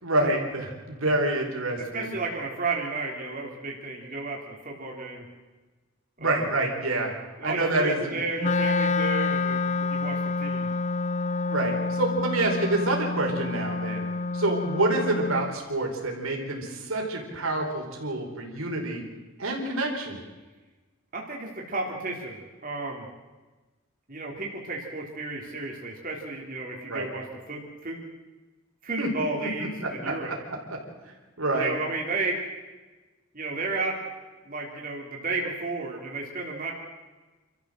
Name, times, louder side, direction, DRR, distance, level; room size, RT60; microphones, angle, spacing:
voice 1, 0.0-2.1 6.2-7.1 7.4-8.1 11.5-14.1 14.3-19.0 19.4-20.2 26.9-27.1 29.0-29.1 29.4-30.4 30.7-30.8 31.0-31.8, right 2 dB, 85° right, 0 dB, 4.6 m, -27 dB
voice 2, 1.9-5.2 6.2-6.5 7.4-10.7 21.1-23.0 24.1-28.0 28.8-30.3 31.5-32.4 33.3-34.1 34.4-36.7, right 3 dB, 40° right, -1 dB, 3.4 m, -33 dB
Wind instrument woodwind instrument, 8.4-15.6, left 3 dB, 35° left, 0.6 m, -28 dB
27.5 x 14.0 x 7.7 m, 1.2 s
head